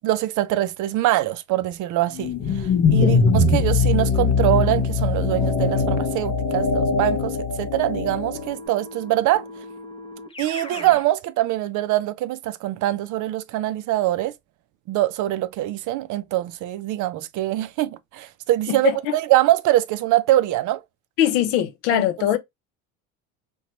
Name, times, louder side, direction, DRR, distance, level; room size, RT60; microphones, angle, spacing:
voice 1, 0.0-9.4 10.4-14.3 14.9-20.8 21.9-22.0, right 15 dB, 50° right, 0.4 m, -23 dB
sound 1, 2.2-8.5, left 4 dB, 50° left, 0.9 m, -21 dB
Keyboard (musical), 8.3-11.1, left 2 dB, 15° left, 0.5 m, -38 dB
voice 2, 18.7-19.1 21.2-22.4, left 12 dB, 70° left, 0.6 m, -22 dB
2.8 x 2.2 x 2.8 m
supercardioid pair, 85°, 41 cm